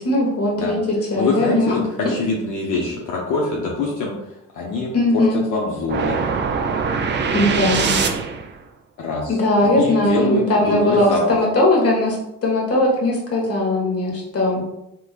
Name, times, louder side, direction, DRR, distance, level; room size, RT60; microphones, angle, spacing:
voice 1, 0.0-1.8 2.7-2.8 4.9-5.4 7.3-8.0 9.3-12.2 12.4-14.6, left 1 dB, 50° left, -1 dB, 1.3 m, -19 dB
voice 2, 1.2-1.8 2.1-4.1 4.5-5.2 5.5-6.2 9.0-11.4, left 2 dB, 75° left, -3 dB, 0.7 m, -24 dB
sound 1, 5.9-8.6, right 5 dB, 35° right, 0.4 m, -22 dB
3.6 x 3.0 x 2.4 m, 0.84 s
cardioid pair, 95°, 31 cm